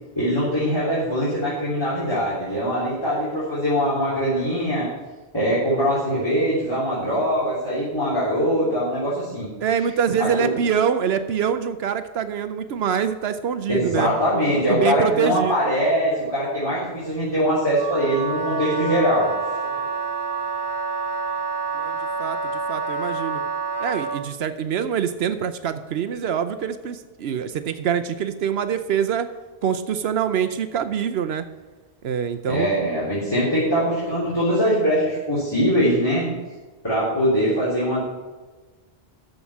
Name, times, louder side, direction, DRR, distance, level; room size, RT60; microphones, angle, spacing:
voice 1, 0.2-4.9 5.3-9.5 10.2-10.5 13.7-19.3 32.5-36.3 36.8-38.0, equal, 25° left, -9 dB, 3.4 m, -22 dB
voice 2, 9.6-14.1 14.7-15.5 19.7-19.9 21.7-23.4 23.8-29.3 29.6-31.5 32.0-32.7, right 8 dB, 75° right, 11 dB, 0.9 m, -25 dB
Wind instrument woodwind instrument, 17.8-24.3, right 4 dB, 25° right, 0.7 m, -28 dB
13.5 x 5.2 x 7.1 m, 1.3 s
omnidirectional pair, 1.1 m